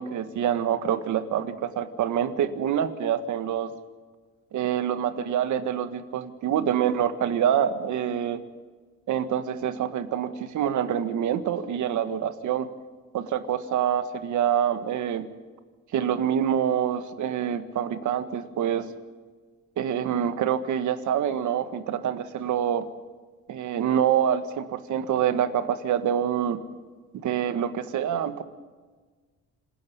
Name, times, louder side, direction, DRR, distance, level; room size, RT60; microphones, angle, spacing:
voice 1, 0.0-3.7 4.5-8.4 9.1-12.7 13.1-15.3 15.9-18.9 19.8-22.9 23.5-26.6 27.2-28.4, right 9 dB, 75° right, 11 dB, 1.7 m, -26 dB
27.0 x 10.5 x 9.7 m, 1.4 s
cardioid pair, 90°, 30 cm